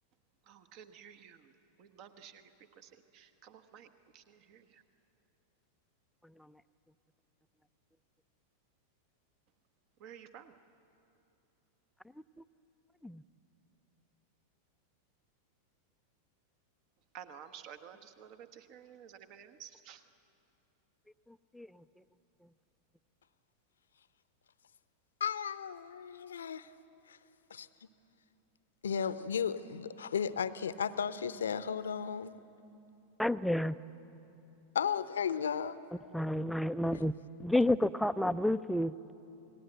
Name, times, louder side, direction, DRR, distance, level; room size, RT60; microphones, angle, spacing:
voice 1, 0.5-1.4 1.8-2.5 3.1-3.9 4.1-4.6 10.0-10.5 17.1-20.0, right 9 dB, 40° right, 10 dB, 1.3 m, -52 dB
voice 2, 25.2-26.7 27.1-27.2 27.5-27.7 28.8-32.3 34.7-35.8, left 7 dB, 65° left, 15 dB, 0.7 m, -34 dB
voice 3, 33.2-33.8 36.1-37.1 37.4-38.9, left 1 dB, ahead, 13 dB, 0.5 m, -30 dB
28.5 x 19.0 x 7.9 m, 2.8 s
figure-of-eight pair, 90°, 0 cm